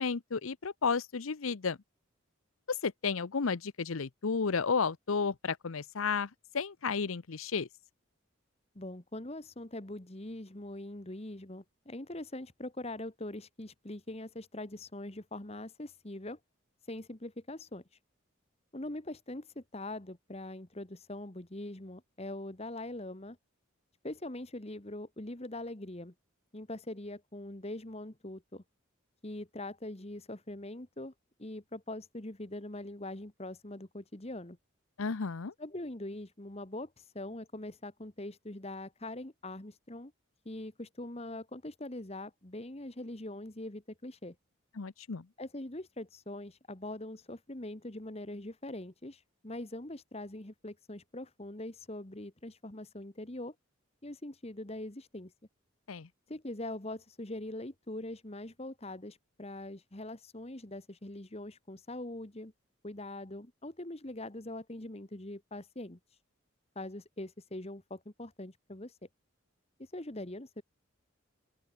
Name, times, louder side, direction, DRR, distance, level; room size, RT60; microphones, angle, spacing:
voice 1, 0.0-1.8 2.7-7.7 35.0-35.5 44.8-45.3 55.9-56.1, left 5 dB, 80° left, 0.7 m, -32 dB
voice 2, 8.7-16.4 16.9-17.8 18.7-23.4 24.0-26.1 26.5-28.6 29.2-31.1 31.4-34.6 35.6-40.1 40.4-44.3 45.4-53.5 54.0-55.3 56.3-62.5 62.8-66.0 66.7-68.9 69.8-70.6, left 1 dB, 30° left, 1.5 m, -42 dB
open air
head